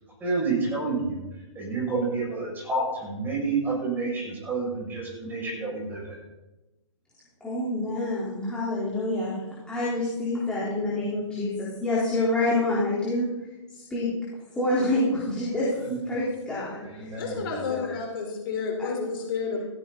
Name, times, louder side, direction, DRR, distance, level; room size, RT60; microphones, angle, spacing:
voice 1, 0.2-1.2 1.6-6.2 15.8-16.0 16.8-17.5, right 3 dB, 10° right, -3 dB, 6.9 m, -29 dB
voice 2, 7.4-9.4 9.7-13.3 13.7-14.1 14.6-17.2 17.7-17.9 18.8-19.1 19.5-19.6, left 2 dB, 5° left, -9 dB, 4.2 m, -27 dB
voice 3, 17.2-19.6, left 5 dB, 45° left, 0 dB, 4.4 m, -30 dB
16.5 x 15.5 x 4.2 m, 1.0 s
figure-of-eight pair, 130°, 16 cm